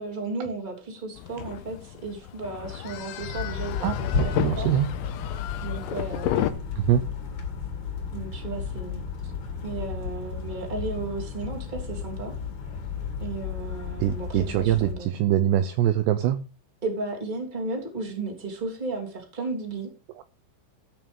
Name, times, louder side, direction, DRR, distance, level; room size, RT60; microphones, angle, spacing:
voice 1, 0.0-4.1 4.6-4.7 5.6-6.5 8.1-9.3 9.6-12.3 13.2-15.2 16.8-19.9, right 3 dB, 15° right, 2 dB, 2.1 m, -34 dB
sound 1, 1.2-6.5, left 13 dB, 80° left, 3.4 m, -32 dB
sound 2, 3.2-14.9, left 5 dB, 55° left, 3.6 m, -33 dB
voice 2, 3.8-4.9 6.8-7.0 14.0-16.4, right 11 dB, 85° right, 11 dB, 2.4 m, -23 dB
14.0 x 6.0 x 5.3 m, 0.34 s
omnidirectional pair, 5.7 m